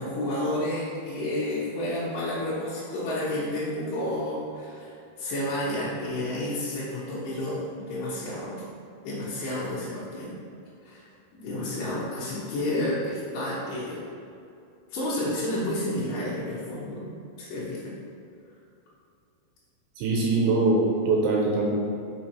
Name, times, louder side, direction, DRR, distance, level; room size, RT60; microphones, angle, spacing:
voice 1, 0.0-8.6 9.0-10.3 10.8-11.1 11.3-14.0 14.9-17.1 17.4-17.9, left 1 dB, 65° left, -9 dB, 2.3 m, -30 dB
voice 2, 20.0-21.7, right 3 dB, 85° right, -2 dB, 3.1 m, -22 dB
6.2 x 6.2 x 4.5 m, 2.5 s
omnidirectional pair, 5.1 m